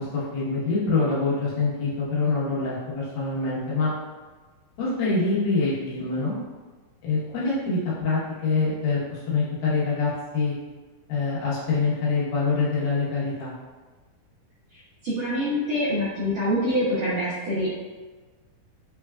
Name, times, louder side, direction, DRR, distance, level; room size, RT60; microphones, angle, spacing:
voice 1, 0.0-3.9 4.8-6.3 7.0-10.5 11.1-13.5, left 4 dB, 80° left, -8 dB, 2.9 m, -25 dB
voice 2, 15.0-17.7, equal, 85° right, -9 dB, 1.5 m, -25 dB
6.0 x 2.3 x 2.3 m, 1.3 s
omnidirectional pair, 4.2 m